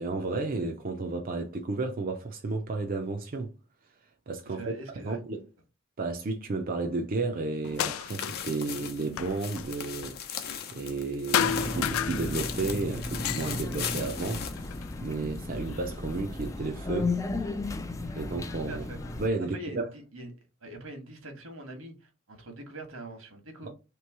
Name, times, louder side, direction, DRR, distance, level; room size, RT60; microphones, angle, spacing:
voice 1, 0.0-3.5 4.3-4.7 5.0-5.5 6.0-14.5 15.0-17.1 18.1-18.8 19.2-19.9, right 3 dB, 45° right, 0.5 m, -32 dB
voice 2, 4.4-5.2 18.7-19.0 19.5-20.3 20.6-23.7, right 1 dB, 80° right, 1.4 m, -43 dB
sound 1, 7.6-8.6 8.8-11.1 11.3-12.7 13.1-14.9 15.6-16.5 17.4-17.5 18.2-19.2, left 9 dB, 90° left, 0.4 m, -33 dB
sound 2, 7.8-15.5 15.8-15.9 16.4-16.5, left 7 dB, 50° left, 0.7 m, -39 dB
Bingo in Fargo, 11.4-19.3, left 2 dB, 15° left, 0.4 m, -35 dB
3.4 x 3.0 x 4.6 m
head